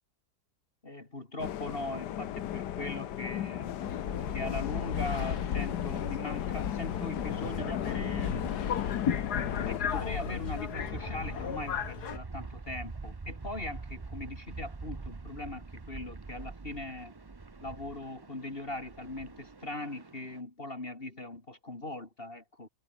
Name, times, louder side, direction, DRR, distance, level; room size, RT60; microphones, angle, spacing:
voice 1, 0.8-3.8 4.3-8.5 9.7-17.1 17.6-22.7, left 2 dB, 35° left, 3.1 m, -40 dB
sound 1, 1.4-9.8, left 11 dB, 90° left, 1.5 m, -36 dB
Subway metro underground, 3.8-12.2, left 8 dB, 70° left, 1.9 m, -34 dB
sound 2, 7.1-20.4, right 3 dB, 30° right, 0.4 m, -45 dB
omnidirectional pair, 1.8 m